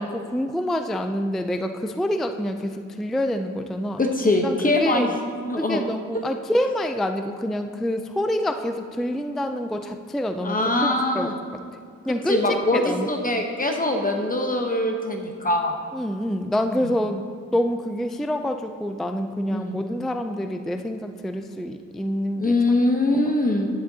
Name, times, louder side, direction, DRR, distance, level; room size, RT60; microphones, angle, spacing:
voice 1, 0.0-4.0 4.4-5.1 5.6-11.3 12.1-13.1 15.9-17.2 17.5-22.5, equal, ahead, 6 dB, 0.3 m, -27 dB
voice 2, 4.0-5.1 5.4-5.8 10.4-11.3 12.3-15.7 16.7-16.8 19.5-19.8 22.4-23.7, left 2 dB, 25° left, 2 dB, 0.9 m, -23 dB
10.5 x 10.0 x 2.7 m, 2.3 s
cardioid pair, 100°, 31 cm